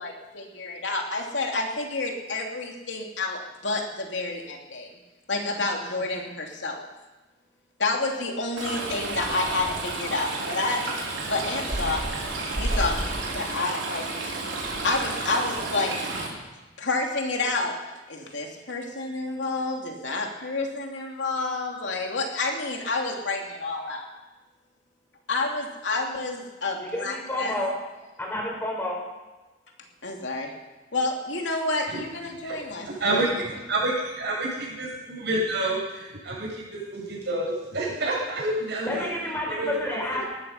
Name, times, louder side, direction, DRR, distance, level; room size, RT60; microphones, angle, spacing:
voice 1, 0.0-4.9 5.3-6.9 7.8-11.0 11.3-12.0 12.6-13.0 13.3-14.1 14.8-16.2 16.8-17.8 18.1-24.1 25.3-27.6 30.0-30.5 30.9-33.2, left 3 dB, 75° left, 1 dB, 2.8 m, -29 dB
Stream, 8.6-16.3, right 2 dB, 80° right, 4.0 m, -31 dB
voice 2, 26.8-27.7 28.2-29.0 38.8-40.2, left 1 dB, 10° left, -1 dB, 4.4 m, -30 dB
voice 3, 32.8-39.1 39.5-40.2, right 1 dB, 65° right, -5 dB, 7.7 m, -29 dB
19.5 x 13.5 x 5.6 m, 1.1 s
head